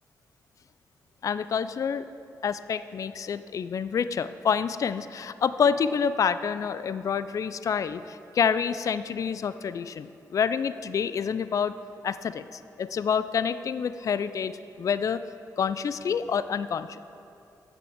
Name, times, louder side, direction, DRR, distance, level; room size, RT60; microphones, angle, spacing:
voice 1, 1.2-2.0 2.4-11.7 12.0-12.4 12.8-15.2 15.6-17.0, left 7 dB, 50° left, 14 dB, 0.3 m, -27 dB
7.8 x 7.0 x 7.3 m, 2.7 s
cardioid pair, 70°, 7 cm